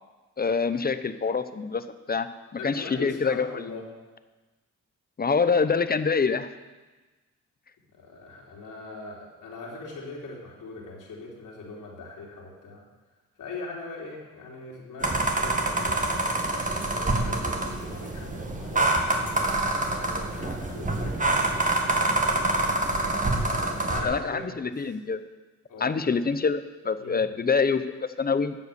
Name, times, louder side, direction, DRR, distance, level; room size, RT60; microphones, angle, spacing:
voice 1, 0.4-2.3 2.6-3.7 5.2-6.5 24.0-25.2 25.8-28.6, left 5 dB, 30° left, 11 dB, 0.9 m, -26 dB
voice 2, 2.6-3.8 7.9-12.8 13.4-22.4 23.3-24.4 25.7-26.1 27.0-27.2, left 3 dB, 80° left, -3 dB, 3.5 m, -41 dB
sound 1, 15.0-24.0, right 2 dB, 25° right, 2.1 m, -26 dB
13.0 x 7.9 x 7.0 m, 1.2 s
cardioid pair, 75°, 31 cm